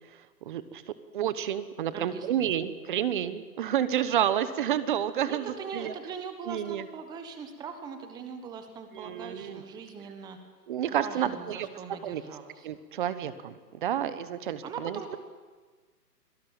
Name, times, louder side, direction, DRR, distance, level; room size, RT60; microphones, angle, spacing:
voice 1, 0.4-0.8 1.1-5.9 6.5-6.9 8.9-9.6 10.7-11.7 12.0-12.2 12.6-15.2, right 10 dB, 30° right, 13 dB, 1.2 m, -30 dB
voice 2, 1.9-2.5 5.2-10.4 10.9-12.7 14.6-15.2, right 5 dB, 10° right, 8 dB, 1.2 m, -41 dB
25.5 x 18.5 x 8.9 m, 1.4 s
hypercardioid pair, 155°, 50 cm